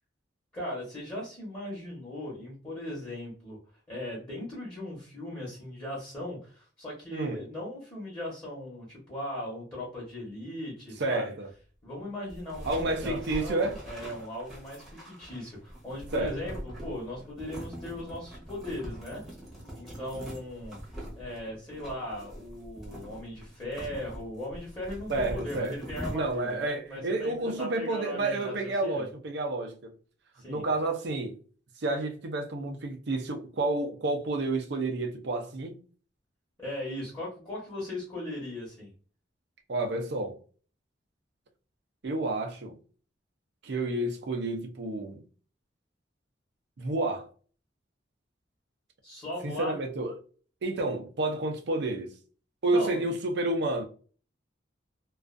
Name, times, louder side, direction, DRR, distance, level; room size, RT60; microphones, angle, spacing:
voice 1, 0.5-3.6 3.9-11.3 11.8-19.2 19.8-20.8 21.2-29.1 30.4-30.6 36.6-38.9 49.0-49.8 52.7-53.0, left 1 dB, 20° left, 1.0 m, -38 dB
voice 2, 7.1-7.4 11.0-11.5 12.6-13.8 16.1-16.5 25.1-25.8 26.1-30.0 30.5-31.4 31.8-35.8 39.7-40.4 42.0-42.8 43.6-45.2 46.8-47.3 49.4-50.2 50.6-52.1 52.6-53.8, right 2 dB, 60° right, 0.5 m, -30 dB
sound 1, 12.3-26.6, equal, ahead, 0.8 m, -42 dB
2.4 x 2.3 x 2.4 m
head